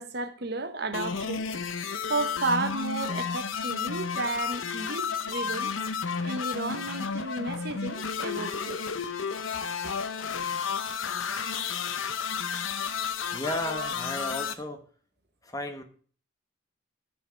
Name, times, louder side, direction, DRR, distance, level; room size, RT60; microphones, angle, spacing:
voice 1, 0.0-1.4 2.1-5.7 6.2-8.8, right 3 dB, 55° right, 1.0 m, -32 dB
sound 1, 0.9-14.5, left 6 dB, 90° left, 0.8 m, -32 dB
voice 2, 13.2-14.9 15.4-15.8, left 1 dB, 20° left, 1.2 m, -34 dB
14.5 x 5.0 x 5.1 m
head